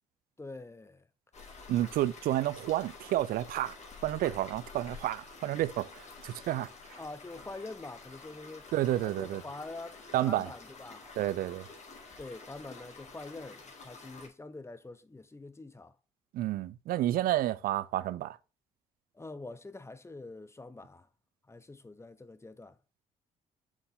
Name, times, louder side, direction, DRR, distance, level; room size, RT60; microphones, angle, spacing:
voice 1, 0.4-1.1 7.0-8.7 9.0-10.0 10.3-11.1 12.2-16.0 19.1-21.1 21.5-22.8, left 2 dB, 15° left, 0.8 m, -45 dB
sound 1, 1.3-14.3, left 4 dB, 45° left, 2.4 m, -50 dB
voice 2, 1.7-3.8 4.0-7.0 8.7-9.4 10.1-10.5 11.2-11.7 16.3-18.4, right 14 dB, 70° right, 0.4 m, -30 dB
7.1 x 4.4 x 3.6 m
supercardioid pair, 55°, 16 cm